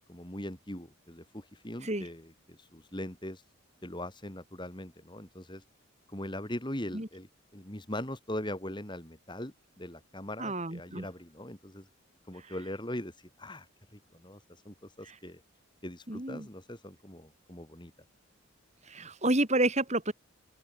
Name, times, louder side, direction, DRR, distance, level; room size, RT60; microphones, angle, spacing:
voice 1, 0.1-3.4 3.8-5.6 6.1-11.9 12.3-13.1 13.4-13.7 13.9-14.4 14.6-15.4 15.8-17.9, left 1 dB, 20° left, 3.1 m, -41 dB
voice 2, 10.4-11.1 15.1-15.2 16.1-16.5 18.9-20.1, right 2 dB, 30° right, 2.6 m, -30 dB
open air
head